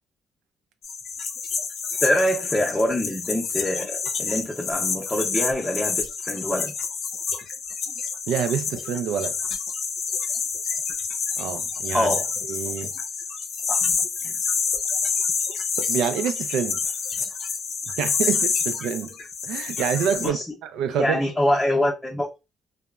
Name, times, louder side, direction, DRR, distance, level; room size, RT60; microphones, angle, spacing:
sound 1, 0.8-20.3, left 5 dB, 65° left, 0.6 m, -28 dB
voice 1, 2.0-6.7 11.9-12.3 13.7-14.0 20.2-20.4 20.9-22.3, left 1 dB, 10° left, 0.6 m, -25 dB
voice 2, 8.3-9.4 11.4-12.1 12.5-12.9 14.2-14.4 15.8-16.9 18.0-19.1 19.4-20.4 20.6-21.2, right 8 dB, 90° right, 0.3 m, -27 dB
2.9 x 2.0 x 2.3 m
cardioid pair, 90°, 0 cm